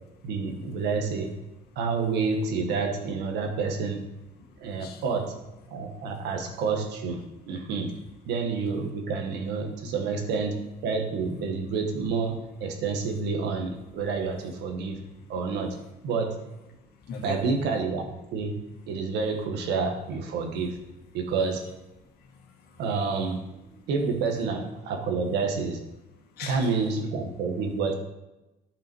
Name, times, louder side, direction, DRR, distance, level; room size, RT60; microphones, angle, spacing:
voice 1, 0.2-1.3 1.7-4.1 4.6-5.4 5.7-7.9 8.2-15.0 15.3-15.8 16.0-16.4 17.2-20.8 21.1-21.6 22.8-25.8 26.4-27.9, right 4 dB, 85° right, 3 dB, 1.5 m, -29 dB
voice 2, 4.4-5.0 5.7-6.1 15.0-15.2 16.8-17.4 22.0-22.8 26.3-26.8, left 4 dB, 70° left, 3 dB, 1.7 m, -43 dB
10.5 x 5.7 x 4.6 m, 0.97 s
cardioid pair, 110°, 17 cm